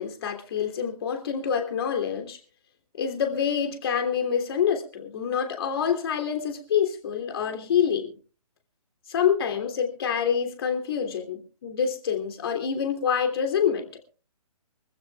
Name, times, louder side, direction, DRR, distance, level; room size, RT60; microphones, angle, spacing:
voice 1, 0.0-2.4 2.9-8.2 9.1-13.9, left 7 dB, 40° left, 3.1 m, -26 dB
25.0 x 15.0 x 2.4 m
figure-of-eight pair, 135°, 20 cm